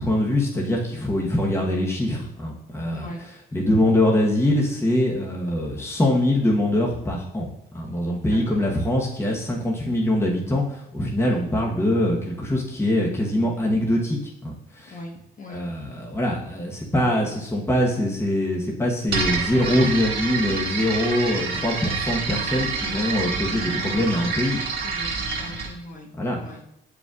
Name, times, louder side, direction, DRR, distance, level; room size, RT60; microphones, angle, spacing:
voice 1, 0.0-3.1 3.5-7.5 7.7-14.9 15.5-24.9 26.2-26.4, left 1 dB, 15° left, -2 dB, 1.2 m, -23 dB
voice 2, 8.3-8.6 11.3-11.5 14.9-15.6 24.7-26.1 26.4-26.6, left 1 dB, 40° left, 0 dB, 1.3 m, -39 dB
sound 1, 19.1-25.7, right 4 dB, 55° right, 1.6 m, -27 dB
7.7 x 4.9 x 2.5 m, 0.77 s
cardioid pair, 90°, 20 cm